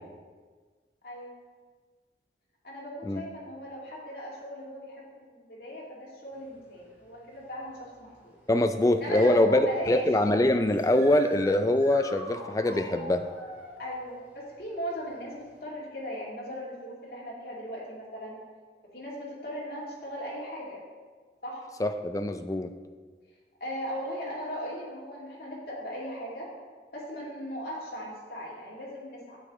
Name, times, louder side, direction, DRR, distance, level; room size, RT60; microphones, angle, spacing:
voice 1, 2.6-8.3 9.0-10.1 13.8-18.4 18.9-20.8 21.4-21.6 23.6-26.5 26.9-29.4, equal, 55° left, -5 dB, 2.4 m, -38 dB
sound 1, 6.3-15.6, equal, 10° right, 2.0 m, -47 dB
voice 2, 8.5-13.3 21.8-22.7, left 1 dB, 20° left, 8 dB, 0.4 m, -24 dB
8.4 x 7.9 x 3.7 m, 1.5 s
head